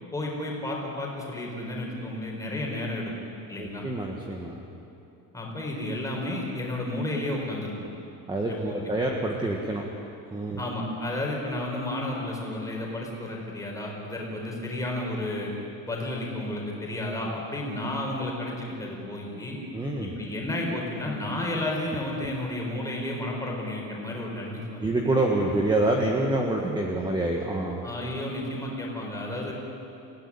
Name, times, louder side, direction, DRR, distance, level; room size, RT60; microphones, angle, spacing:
voice 1, 0.1-3.1 3.5-3.8 5.3-7.9 8.6-8.9 10.6-15.5 15.9-19.6 20.0-24.8 25.4-25.5 27.8-29.5, left 1 dB, 10° left, -2 dB, 4.4 m, -32 dB
voice 2, 3.6-4.6 8.3-9.8 10.3-10.6 19.7-20.1 24.8-27.9, right 2 dB, 10° right, 0 dB, 1.6 m, -27 dB
27.5 x 16.5 x 9.9 m, 2.8 s
cardioid pair, 175°, 39 cm